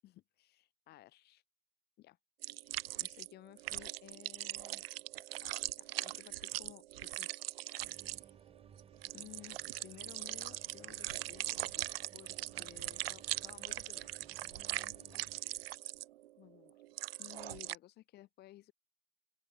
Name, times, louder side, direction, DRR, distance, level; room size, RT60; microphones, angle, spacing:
voice 1, 0.0-1.4 2.0-2.2 2.6-4.9 5.4-7.4 7.7-8.4 9.1-11.9 12.1-15.4 16.4-16.8 17.2-18.7, left 15 dB, 20° left, 3.1 m, -57 dB
sound 1, 2.4-3.3 3.6-17.8, right 15 dB, 40° right, 0.9 m, -41 dB
sound 2, 7.8-15.4, right 7 dB, 10° right, 7.7 m, -61 dB
open air
hypercardioid pair, 150°, 46 cm